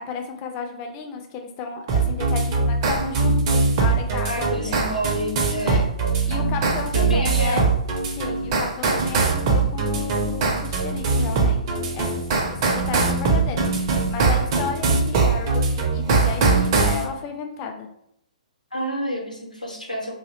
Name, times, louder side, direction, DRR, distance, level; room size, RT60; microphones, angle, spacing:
voice 1, 0.0-4.8 5.7-5.8 6.3-7.7 8.2-13.7 14.1-17.9, left 5 dB, 25° left, 4 dB, 0.3 m, -33 dB
sound 1, 1.9-17.0, right 3 dB, 35° right, 0.4 m, -22 dB
voice 2, 4.2-5.9 6.9-7.7 12.5-12.7 18.7-20.1, equal, 90° left, -1 dB, 0.7 m, -29 dB
2.3 x 2.0 x 2.8 m, 0.75 s
figure-of-eight pair, 120°, 4 cm